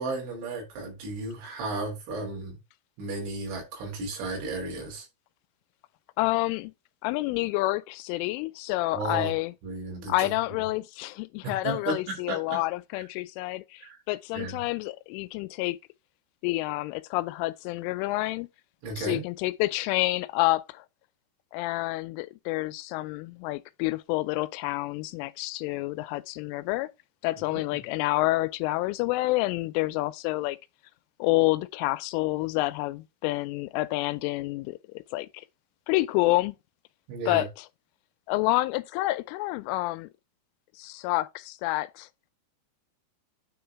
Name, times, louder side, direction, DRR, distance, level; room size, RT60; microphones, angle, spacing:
voice 1, 0.0-2.6 3.0-5.1 8.9-9.3 9.6-10.3 11.4-12.6 13.8-14.0 14.3-14.6 18.8-19.2 27.5-27.6 37.1-37.5, right 2 dB, 75° right, 5.4 m, -34 dB
voice 2, 6.2-6.7 7.0-9.5 10.1-15.8 16.4-18.5 19.0-20.8 21.5-26.9 27.2-30.6 31.2-34.8 35.1-35.5 35.9-36.6 37.3-37.5 38.3-40.1 40.8-42.1, left 19 dB, 85° left, 3.1 m, -28 dB
9.3 x 3.9 x 4.6 m
omnidirectional pair, 5.6 m